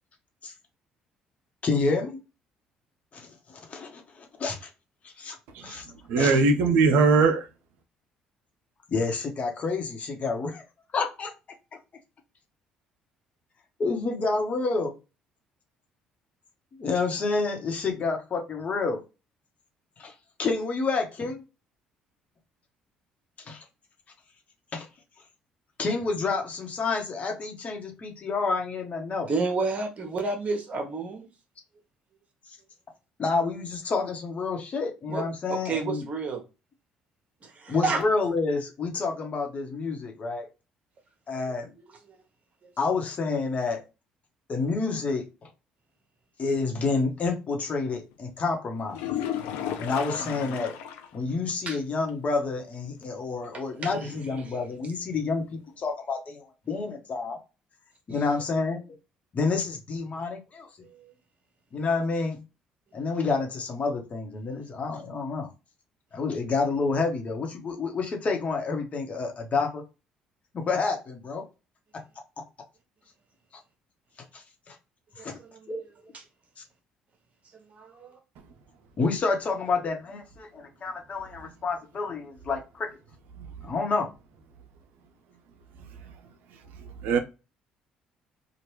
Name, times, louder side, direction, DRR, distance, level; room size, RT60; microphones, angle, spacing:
voice 1, 1.6-2.2 3.1-3.3 3.7-4.7 5.0-5.4 5.6-5.8 6.1-6.4 8.9-10.6 10.9-11.3 13.8-14.9 16.8-19.0 20.0-20.1 20.4-21.4 23.5-23.6 24.7-24.8 25.8-29.3 33.2-36.0 37.7-40.5 41.3-41.7 42.8-43.8 44.5-45.2 46.4-49.0 49.8-50.7 51.1-57.4 58.1-58.8 59.3-60.7 61.7-62.4 62.9-65.5 66.1-69.8 70.5-71.4 74.3-74.4 74.7-74.8 75.2-75.4 75.7-76.1 79.0-82.9 83.6-84.1, left 4 dB, 45° left, 1.1 m, -29 dB
voice 2, 6.1-7.5 87.0-87.2, right 4 dB, 75° right, 0.5 m, -20 dB
voice 3, 29.3-31.3 35.1-36.4 37.4-38.0 42.1-42.2 50.2-50.6 51.7-51.8 53.5-54.2 54.4-54.5 60.9-61.1 75.2-75.7 77.7-78.2, right 3 dB, 45° right, 1.1 m, -31 dB
sound 1, 48.9-51.2 51.5-51.6 52.0-52.1 55.9-56.0, left 9 dB, 80° left, 0.5 m, -33 dB
3.1 x 2.4 x 3.0 m
hypercardioid pair, 60°, 3 cm